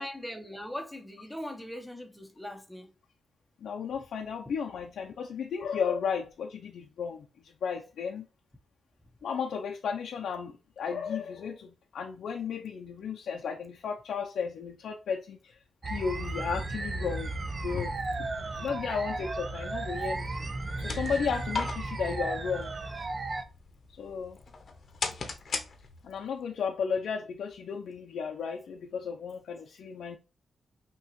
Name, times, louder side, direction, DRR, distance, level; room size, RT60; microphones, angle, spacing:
voice 1, 0.0-2.9, left 1 dB, 5° left, 0.9 m, -40 dB
voice 2, 3.6-8.3 9.2-15.6 15.8-17.3 17.6-18.3 18.6-20.5 20.8-22.8 24.0-24.4 26.0-30.2, left 6 dB, 85° left, 0.5 m, -34 dB
sound 1, 15.8-23.4, right 2 dB, 35° right, 0.5 m, -35 dB
sound 2, 20.5-26.3, left 4 dB, 55° left, 0.8 m, -39 dB
5.6 x 3.0 x 3.0 m
cardioid pair, 110°, 0 cm